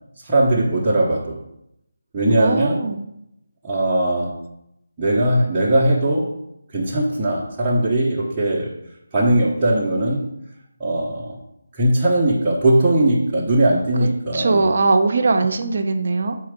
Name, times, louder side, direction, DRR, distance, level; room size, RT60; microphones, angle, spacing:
voice 1, 0.2-1.4 2.1-2.9 3.6-4.4 5.0-6.4 6.7-8.8 9.1-10.3 10.8-11.4 11.7-14.7, right 1 dB, 15° right, -9 dB, 0.9 m, -19 dB
voice 2, 2.4-3.0 14.3-16.4, right 3 dB, 55° right, 6 dB, 0.6 m, -20 dB
4.6 x 4.4 x 5.1 m, 0.79 s
figure-of-eight pair, 160°, 0 cm